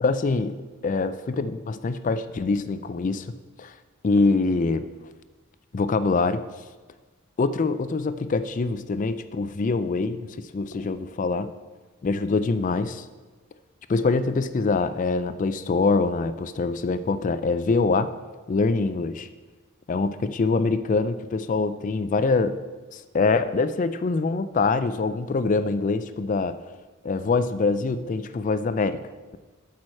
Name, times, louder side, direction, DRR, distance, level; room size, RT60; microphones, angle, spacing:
voice 1, 0.0-0.6 0.8-3.3 3.6-3.7 4.0-4.8 5.7-6.4 7.4-11.5 12.0-13.0 13.9-18.1 18.5-19.3 19.9-22.6 22.9-26.5 27.0-29.0, left 3 dB, 40° left, 13 dB, 0.4 m, -24 dB
sound 1, 1.3-2.1 4.2-5.2 7.4-8.1 10.7-11.3, left 2 dB, 80° left, 1.5 m, -48 dB
8.6 x 4.7 x 7.5 m, 1.3 s
head